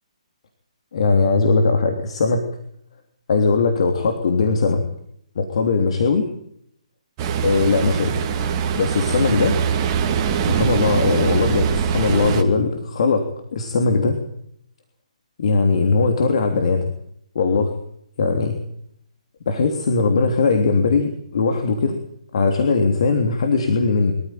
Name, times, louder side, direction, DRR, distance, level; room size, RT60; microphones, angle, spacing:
voice 1, 0.9-2.4 3.3-4.8 5.4-6.3 7.4-8.2 8.7-9.6 10.4-14.2 15.4-16.9 17.4-17.7 18.2-18.6 19.5-22.0 22.3-24.1, left 4 dB, 55° left, 5 dB, 3.3 m, -19 dB
Ocean, 7.2-12.4, right 7 dB, 30° right, 2.4 m, -22 dB
24.0 x 14.5 x 9.3 m, 0.69 s
figure-of-eight pair, 135°, 4 cm